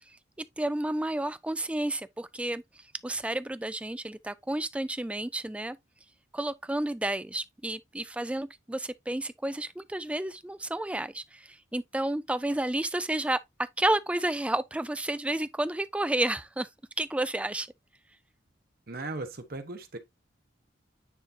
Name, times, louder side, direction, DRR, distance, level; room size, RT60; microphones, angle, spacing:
voice 1, 0.4-2.6 3.0-5.8 6.3-13.4 13.8-16.7 17.0-17.7, right 1 dB, 5° right, 0.3 m, -31 dB
voice 2, 18.9-20.0, right 2 dB, 50° right, 0.9 m, -37 dB
9.5 x 3.9 x 2.7 m
head